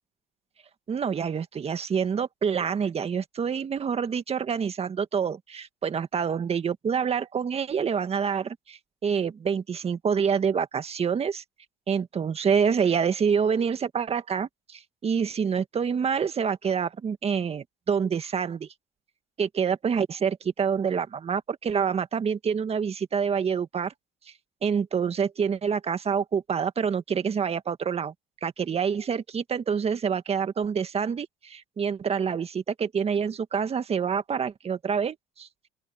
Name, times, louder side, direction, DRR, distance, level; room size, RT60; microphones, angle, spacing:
voice 1, 0.9-11.4 11.9-18.7 19.4-23.9 24.6-28.1 28.4-35.5, right 6 dB, 40° right, 1.8 m, -27 dB
open air
supercardioid pair, 85°, 17 cm